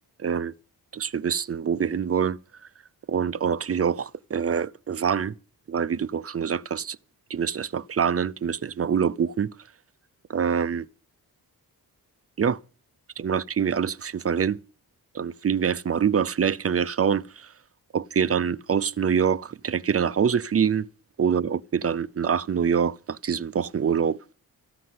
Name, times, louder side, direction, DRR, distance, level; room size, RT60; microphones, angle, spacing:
voice 1, 0.2-0.5 0.9-2.4 3.1-5.3 5.7-7.0 7.3-9.5 10.3-10.9 12.4-12.6 13.2-14.6 15.1-17.5 17.9-20.9 21.2-24.2, right 7 dB, 40° right, 0.5 m, -25 dB
14.0 x 5.9 x 9.4 m
cardioid pair, 75°, 38 cm